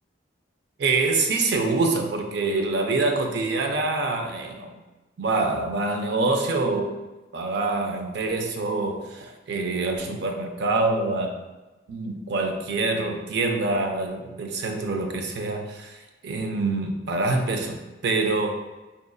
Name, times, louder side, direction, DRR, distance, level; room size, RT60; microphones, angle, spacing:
voice 1, 0.8-4.8 5.2-6.9 7.3-11.4 11.9-18.5, right 3 dB, 65° right, 4 dB, 0.5 m, -25 dB
3.9 x 2.5 x 2.2 m, 1.1 s
head